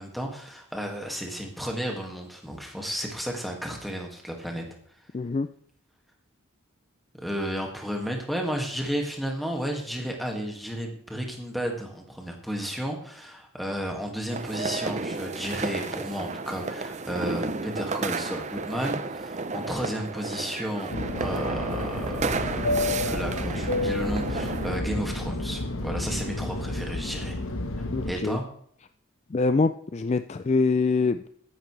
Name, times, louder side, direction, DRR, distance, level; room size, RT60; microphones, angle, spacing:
voice 1, 0.0-4.6 4.9-5.1 7.2-27.4 28.1-28.4, equal, ahead, 1 dB, 2.1 m, -33 dB
voice 2, 5.1-5.5 27.9-28.4 29.3-31.3, left 3 dB, 30° left, 11 dB, 0.3 m, -24 dB
sound 1, 14.3-24.8, right 3 dB, 30° right, 0.6 m, -32 dB
Fixed-wing aircraft airplane, 20.9-28.1, left 2 dB, 75° left, 1.4 m, -30 dB
14.5 x 11.0 x 3.3 m, 0.66 s
head